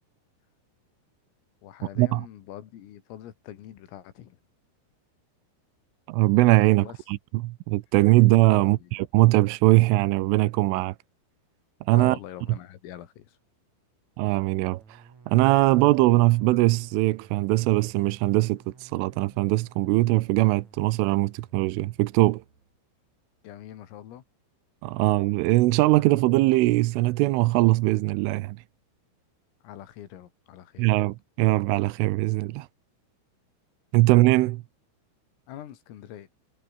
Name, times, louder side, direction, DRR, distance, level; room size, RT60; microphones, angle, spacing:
voice 1, 1.6-4.4 6.7-7.0 8.5-8.9 11.9-13.4 23.4-24.2 29.6-31.0 35.5-36.3, left 11 dB, 85° left, 5.0 m, -43 dB
voice 2, 6.1-10.9 11.9-12.2 14.2-22.4 24.8-28.6 30.8-32.7 33.9-34.6, right 19 dB, 80° right, 3.3 m, -21 dB
sound 1, 14.2-22.8, right 5 dB, 35° right, 5.3 m, -54 dB
omnidirectional pair, 5.9 m